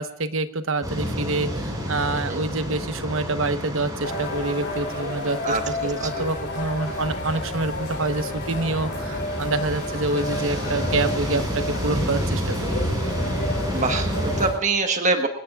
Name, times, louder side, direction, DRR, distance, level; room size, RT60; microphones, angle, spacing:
voice 1, 0.0-12.7, right 3 dB, 65° right, 9 dB, 1.1 m, -27 dB
sound 1, 0.8-14.5, equal, 15° right, 5.9 m, -30 dB
sound 2, 4.0-14.6, left 2 dB, 50° left, 3.3 m, -32 dB
voice 2, 13.7-15.3, right 3 dB, 35° right, 5 dB, 1.4 m, -24 dB
28.5 x 18.0 x 2.4 m, 0.78 s
head